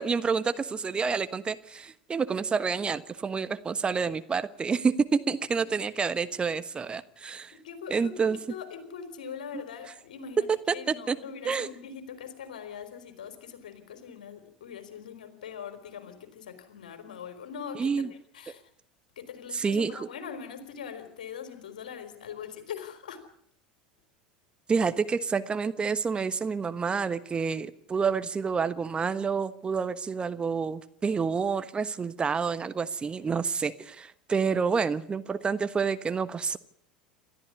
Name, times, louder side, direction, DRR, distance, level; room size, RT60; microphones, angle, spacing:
voice 1, 0.0-7.5 7.9-8.4 10.7-11.2 11.4-11.7 17.7-18.1 19.5-20.1 24.7-36.6, right 5 dB, 20° right, 12 dB, 1.2 m, -28 dB
voice 2, 7.5-17.9 18.3-18.6 19.2-23.2, left 7 dB, 70° left, 8 dB, 4.0 m, -42 dB
28.5 x 13.0 x 9.8 m, 0.70 s
figure-of-eight pair, 80°, 4 cm